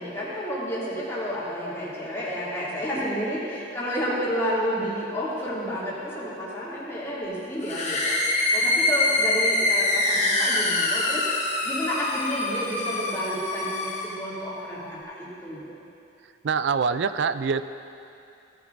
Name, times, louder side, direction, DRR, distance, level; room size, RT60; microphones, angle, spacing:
voice 1, 0.0-11.3 11.6-15.7, equal, 15° left, -9 dB, 2.6 m, -30 dB
sound 1, 7.6-14.2, left 2 dB, 35° left, 1.3 m, -25 dB
voice 2, 16.4-17.6, right 5 dB, 70° right, 12 dB, 0.4 m, -24 dB
17.0 x 10.5 x 2.6 m, 2.6 s
head